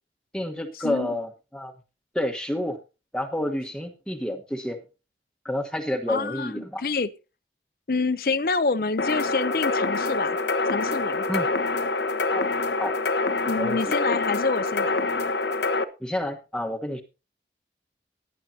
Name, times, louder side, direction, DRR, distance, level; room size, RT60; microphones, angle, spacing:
voice 1, 0.3-1.7 2.1-2.8 3.1-4.8 5.4-6.8 11.3-11.5 12.3-12.5 12.8-12.9 13.6-13.8 16.0-17.0, left 1 dB, 5° left, 4 dB, 1.2 m, -29 dB
voice 2, 6.1-7.1 7.9-10.4 10.7-11.2 13.4-15.1, left 3 dB, 55° left, 13 dB, 0.6 m, -27 dB
sound 1, 9.0-15.8, left 3 dB, 80° left, 1.2 m, -26 dB
18.0 x 10.5 x 2.8 m, 0.30 s
head